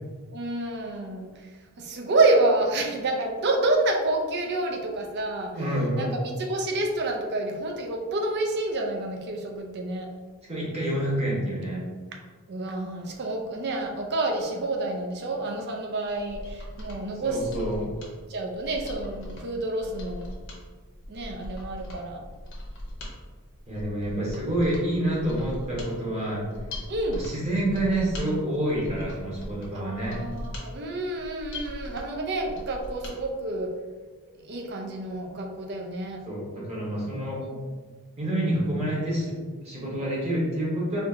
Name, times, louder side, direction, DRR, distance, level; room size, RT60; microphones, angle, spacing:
voice 1, 0.3-1.3 1.8-5.5 6.0-6.1 6.4-10.1 12.5-17.4 18.3-20.3 21.1-22.2 26.9-27.2 29.7-33.8 34.5-36.2 37.5-37.6, right 2 dB, 50° right, 2 dB, 0.5 m, -28 dB
voice 2, 5.6-6.1 10.5-11.8 17.2-17.8 23.7-26.4 27.1-30.2 36.3-37.4 38.2-39.3 39.6-41.0, right 1 dB, 30° right, -5 dB, 1.2 m, -28 dB
Mechanisms, 16.1-33.2 33.5-33.6, left 1 dB, 60° left, 0.9 m, -40 dB
4.4 x 2.5 x 2.7 m, 1.4 s
head